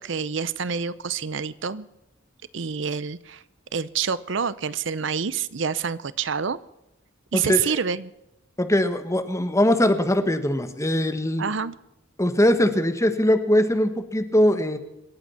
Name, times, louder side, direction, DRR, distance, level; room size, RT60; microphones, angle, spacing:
voice 1, 0.0-1.9 2.5-3.4 3.7-6.6 7.3-8.1 11.4-11.7, right 6 dB, 65° right, 17 dB, 0.7 m, -27 dB
voice 2, 7.3-7.8 8.6-11.5 12.2-14.8, left 1 dB, 15° left, 8 dB, 1.4 m, -21 dB
26.0 x 8.8 x 5.8 m, 0.91 s
head